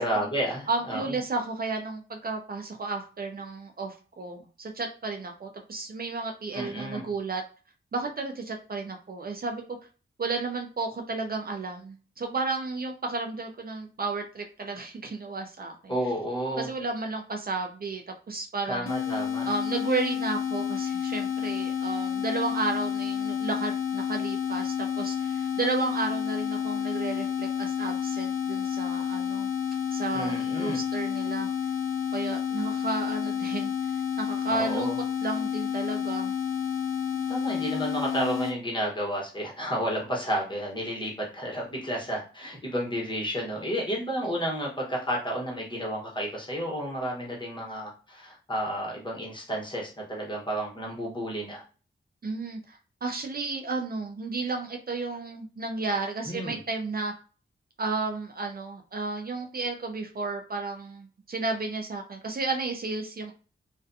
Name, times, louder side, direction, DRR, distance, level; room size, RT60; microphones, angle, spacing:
voice 1, 0.0-1.2 6.5-7.0 15.9-16.7 18.7-19.5 30.1-30.8 34.5-34.9 37.1-51.6 56.2-56.6, equal, 20° left, -3 dB, 1.1 m, -31 dB
voice 2, 0.7-7.4 7.9-9.6 10.2-15.9 16.6-18.9 19.5-29.5 29.9-31.5 32.1-34.9 35.2-36.3 52.2-57.1 57.8-63.3, right 3 dB, 45° right, 3 dB, 0.5 m, -33 dB
sound 1, 18.9-38.6, left 8 dB, 80° left, 0.4 m, -30 dB
2.4 x 2.2 x 2.6 m, 0.36 s
cardioid pair, 60°, 21 cm